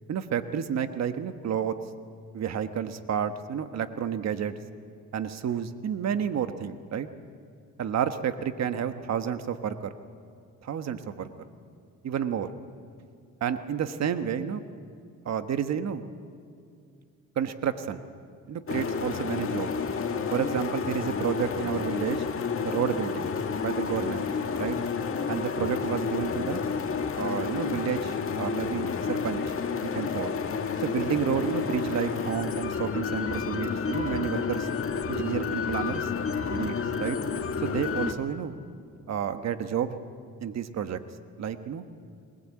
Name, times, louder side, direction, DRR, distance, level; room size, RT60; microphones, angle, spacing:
voice 1, 0.1-1.7 2.3-4.5 5.1-7.1 7.8-9.9 10.6-11.3 12.0-12.5 13.4-14.6 15.2-16.0 17.3-18.0 18.5-19.7 20.3-22.2 22.6-23.3 23.6-24.3 24.5-24.8 25.3-26.6 27.1-29.5 29.8-30.4 30.8-34.7 35.1-36.1 36.5-37.2 37.6-38.5 39.1-40.0 40.4-41.0 41.4-41.8, right 8 dB, 60° right, 9 dB, 1.3 m, -30 dB
sound 1, 18.7-38.1, left 5 dB, 45° left, 1.9 m, -30 dB
21.0 x 19.5 x 8.6 m, 2.4 s
cardioid pair, 90°, 30 cm